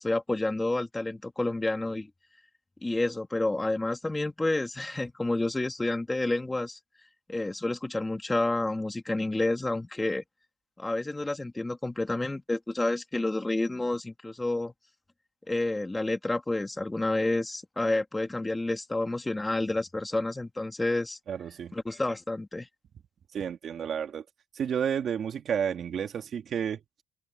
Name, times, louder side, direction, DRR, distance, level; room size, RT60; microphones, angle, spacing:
voice 1, 0.0-2.1 2.8-6.8 7.3-10.2 10.8-14.7 15.5-21.2 21.7-22.7, left 2 dB, 10° left, 2.1 m, -29 dB
voice 2, 21.3-21.8 23.3-24.2 24.5-27.0, right 8 dB, 45° right, 2.0 m, -31 dB
cardioid pair, 125°, 0 cm